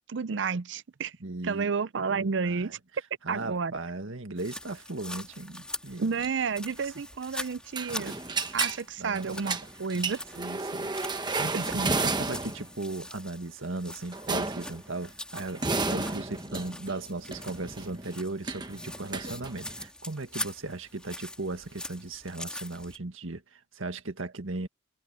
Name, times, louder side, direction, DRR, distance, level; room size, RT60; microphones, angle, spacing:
voice 1, 0.1-1.1 1.4-2.8 3.3-3.7 6.0-8.1 8.5-10.2, right 5 dB, 60° right, 0.5 m, -31 dB
voice 2, 1.2-1.7 2.1-2.6 3.2-6.0 9.0-9.4 9.9-10.1 10.4-24.7, right 2 dB, 85° right, 1.8 m, -37 dB
sound 1, 4.4-23.0, left 1 dB, 5° left, 3.0 m, -43 dB
sound 2, 7.8-8.8 9.1-12.7 14.1-14.8 15.4-19.9, right 3 dB, 20° right, 1.1 m, -32 dB
head